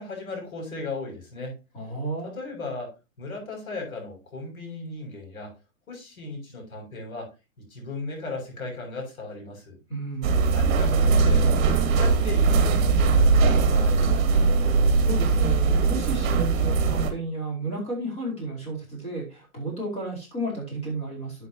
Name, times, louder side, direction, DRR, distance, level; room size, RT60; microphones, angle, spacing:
voice 1, 0.0-1.6 2.2-5.5 5.9-7.3 7.6-9.8 10.5-14.5, left 3 dB, 80° left, 7.1 m, -37 dB
voice 2, 1.7-2.3 9.9-10.5 14.5-21.5, right 2 dB, 15° left, 4.5 m, -33 dB
sound 1, 10.2-17.1, right 4 dB, 35° right, 2.5 m, -20 dB
11.5 x 8.1 x 2.9 m
hypercardioid pair, 150°, 42 cm